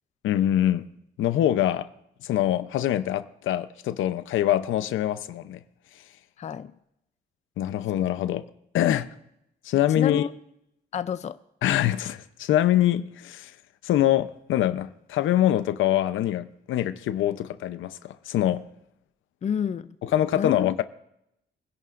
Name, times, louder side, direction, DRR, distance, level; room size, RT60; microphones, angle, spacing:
voice 1, 0.2-0.9 1.2-1.9 2.2-5.6 7.6-8.4 8.7-9.1 9.6-10.3 11.6-13.5 13.8-18.6 20.0-20.8, left 12 dB, 80° left, 0.8 m, -24 dB
voice 2, 6.4-6.7 10.0-10.3 10.9-11.4 19.4-19.9 20.3-20.7, left 8 dB, 35° left, 0.5 m, -29 dB
24.5 x 11.0 x 2.6 m
cardioid pair, 90°, 20 cm